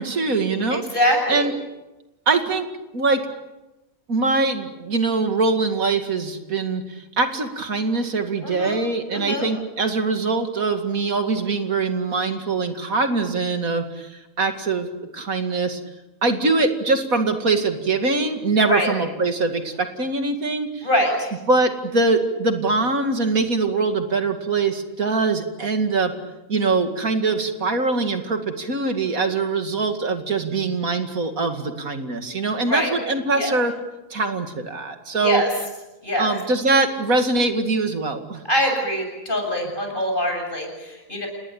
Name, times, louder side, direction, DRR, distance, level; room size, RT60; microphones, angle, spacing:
voice 1, 0.0-0.8 1.3-1.5 2.3-2.7 2.9-3.2 4.1-14.9 15.1-15.8 16.2-20.9 21.5-26.1 26.5-33.7 34.1-35.4 36.2-38.4, right 3 dB, 85° right, 6 dB, 2.7 m, -23 dB
voice 2, 0.7-1.5 8.4-8.8 9.1-9.5 18.7-18.9 20.8-21.3 32.7-32.9 33.3-33.5 35.2-35.5 36.0-36.3 38.4-41.3, left 1 dB, 35° left, 2 dB, 7.7 m, -23 dB
28.5 x 20.0 x 8.8 m, 1.0 s
omnidirectional pair, 1.4 m